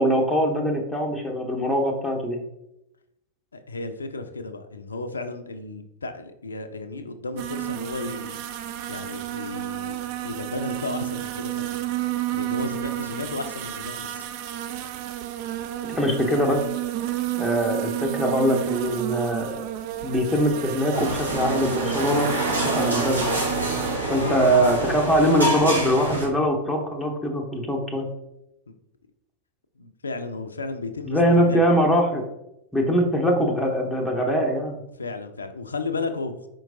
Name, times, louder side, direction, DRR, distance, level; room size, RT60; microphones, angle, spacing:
voice 1, 0.0-2.4 15.9-16.6 17.4-19.6 20.0-23.3 24.1-28.1 31.1-32.2 32.7-34.8, equal, 5° left, -1 dB, 0.7 m, -22 dB
voice 2, 3.5-8.4 8.9-10.0 10.2-11.8 12.3-14.2 24.1-24.4 28.7-28.8 29.8-31.8 35.0-36.5, left 3 dB, 75° left, 9 dB, 0.4 m, -33 dB
sound 1, 7.4-24.0, right 13 dB, 45° right, 0.3 m, -31 dB
sound 2, 20.9-26.3, right 1 dB, 75° right, 1.3 m, -26 dB
4.5 x 4.4 x 2.6 m, 0.85 s
figure-of-eight pair, 90°, 0 cm